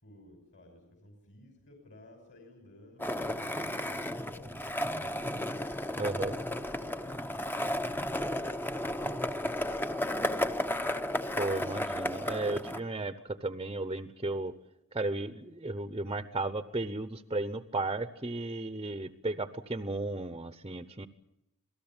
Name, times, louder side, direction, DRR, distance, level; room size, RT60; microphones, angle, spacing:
voice 1, 0.0-5.6 6.3-10.6, left 1 dB, 50° left, 3 dB, 5.9 m, -56 dB
Skateboard, 3.0-12.8, left 1 dB, 10° left, 0.9 m, -33 dB
voice 2, 6.0-6.4 11.3-14.5 14.9-21.1, right 2 dB, 20° right, 11 dB, 0.9 m, -34 dB
27.5 x 18.5 x 9.0 m, 0.84 s
head